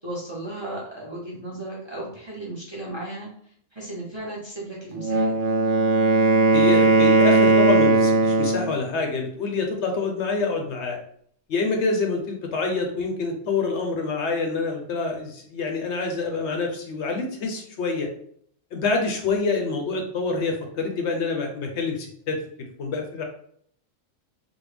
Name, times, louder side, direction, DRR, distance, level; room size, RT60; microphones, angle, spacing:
voice 1, 0.0-3.3 3.7-5.4, right 1 dB, 25° right, -4 dB, 0.6 m, -35 dB
Wind instrument woodwind instrument, 4.9-8.8, right 3 dB, 65° right, 0.9 m, -18 dB
voice 2, 6.5-11.0 11.5-18.1 18.7-22.4 22.8-23.2, left 4 dB, 65° left, 3 dB, 0.8 m, -26 dB
3.4 x 2.1 x 3.2 m, 0.63 s
omnidirectional pair, 1.3 m